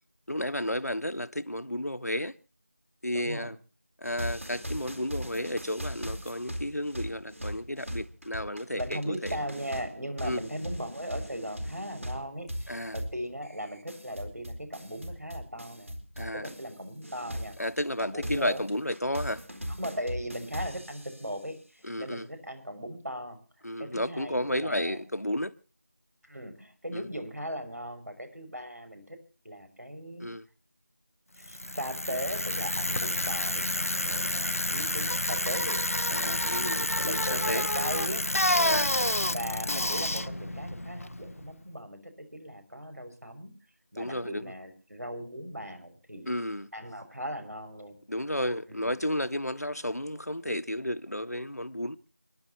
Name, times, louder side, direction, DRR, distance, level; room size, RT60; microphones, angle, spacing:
voice 1, 0.3-2.3 3.0-3.6 4.0-9.4 10.2-10.4 12.7-13.0 16.2-16.5 17.6-19.4 21.8-22.3 23.6-25.5 26.9-27.1 30.2-30.5 32.1-32.2 36.1-37.7 38.6-39.2 43.9-44.4 46.3-46.7 48.1-52.0, left 1 dB, 85° left, 1.4 m, -32 dB
voice 2, 3.1-3.5 8.8-17.5 18.0-18.7 19.8-25.0 26.2-29.2 29.4-30.3 31.4-35.8 37.1-38.2 38.5-38.8 39.3-43.5 43.9-46.3 46.7-48.0 48.7-48.9, equal, 85° right, 6.3 m, -38 dB
sound 1, 4.0-16.8 17.0-21.4, equal, 60° right, 4.1 m, -39 dB
Bicycle, 31.4-41.5, left 1 dB, 65° left, 0.8 m, -29 dB
29.5 x 11.0 x 3.0 m
figure-of-eight pair, 175°, 8 cm